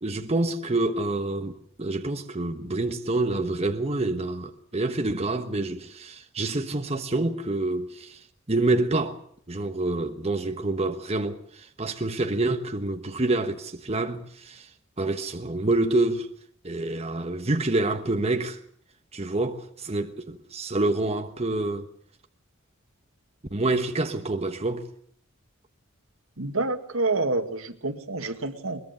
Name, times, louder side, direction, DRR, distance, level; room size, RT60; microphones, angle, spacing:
voice 1, 0.0-8.2 8.5-9.2 9.5-14.7 15.0-16.3 16.6-18.6 19.1-21.9 23.5-24.9, right 2 dB, 30° right, 1.3 m, -27 dB
voice 2, 26.4-28.8, right 3 dB, 75° right, 2.1 m, -28 dB
22.0 x 21.0 x 6.9 m
head